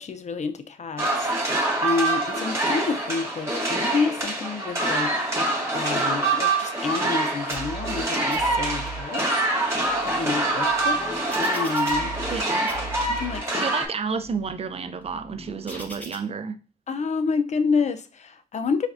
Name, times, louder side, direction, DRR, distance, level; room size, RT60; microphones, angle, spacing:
voice 1, 0.0-1.3 1.8-5.2 5.7-9.2 10.0-12.1 13.1-13.7 16.9-18.9, left 5 dB, 45° left, 0.5 m, -28 dB
sound 1, 1.0-13.9, right 2 dB, 15° right, 1.7 m, -25 dB
sound 2, 7.5-8.0 8.3-9.0 9.6-12.4 12.7-13.4 14.0-16.2, right 2 dB, 10° left, 1.2 m, -39 dB
voice 2, 12.3-12.7 13.5-16.6, right 5 dB, 35° right, 0.5 m, -31 dB
4.6 x 3.4 x 2.5 m
cardioid pair, 80°, 17 cm